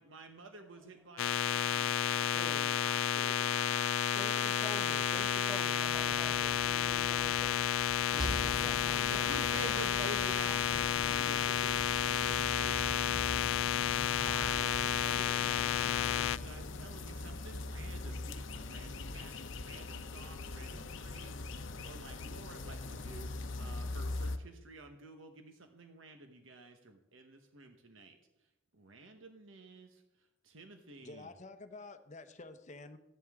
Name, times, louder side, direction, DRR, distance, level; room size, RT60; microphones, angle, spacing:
voice 1, 0.0-4.5 9.1-28.2 28.7-30.0 30.4-31.3, right 3 dB, 70° right, 5 dB, 1.2 m, -50 dB
voice 2, 0.7-1.7 4.1-9.6, equal, 5° right, -1 dB, 1.0 m, -50 dB
sound 1, 1.2-16.4, left 10 dB, 80° left, 0.4 m, -31 dB
Slam, 4.9-9.4, equal, 25° right, 1.2 m, -44 dB
sound 2, 8.2-24.4, left 2 dB, 65° left, 0.8 m, -42 dB
voice 3, 31.0-33.0, left 3 dB, 35° left, 9 dB, 0.9 m, -49 dB
15.0 x 11.0 x 3.7 m, 0.93 s
head